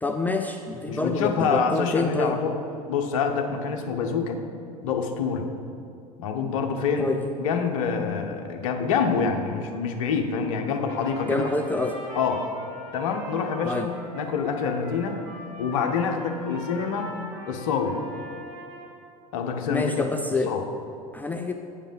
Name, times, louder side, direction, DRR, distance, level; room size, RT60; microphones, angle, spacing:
voice 1, 0.0-2.4 7.0-7.2 11.3-12.0 13.6-13.9 19.7-20.5 21.1-21.5, left 3 dB, 10° left, 5 dB, 0.4 m, -27 dB
voice 2, 0.9-2.6 2.9-4.4 4.8-5.5 6.2-7.1 7.4-11.5 12.2-12.5 12.9-15.2 15.6-17.2 17.5-18.0 19.3-20.1 20.5-20.6, left 5 dB, 60° left, 4 dB, 1.0 m, -26 dB
Trumpet, 10.6-18.9, equal, 55° right, 2.1 m, -41 dB
8.4 x 5.2 x 7.3 m, 2.5 s
figure-of-eight pair, 75°, 19 cm